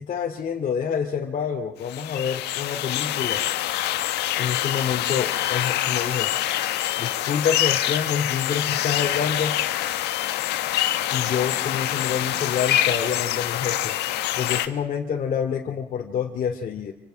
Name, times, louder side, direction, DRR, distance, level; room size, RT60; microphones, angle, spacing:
voice 1, 0.0-3.4 4.4-6.3 7.0-9.6 11.1-13.9 14.4-16.9, left 7 dB, 50° left, 1 dB, 2.7 m, -27 dB
sound 1, 1.8-14.7, left 13 dB, 85° left, 1.7 m, -25 dB
28.5 x 25.5 x 5.8 m, 0.80 s
cardioid pair, 110°, 17 cm